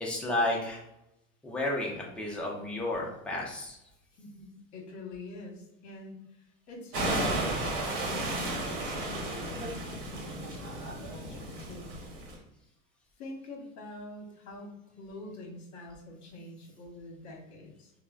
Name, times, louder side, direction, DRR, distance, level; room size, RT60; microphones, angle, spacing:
voice 1, 0.0-0.8 1.4-3.8, left 1 dB, 5° left, -3 dB, 0.3 m, -32 dB
voice 2, 4.2-12.0 13.2-17.9, left 2 dB, 40° left, 0 dB, 1.0 m, -46 dB
sound 1, 6.9-12.4, right 1 dB, 55° right, 1.0 m, -33 dB
3.1 x 2.0 x 2.3 m, 0.85 s
supercardioid pair, 110°, 42 cm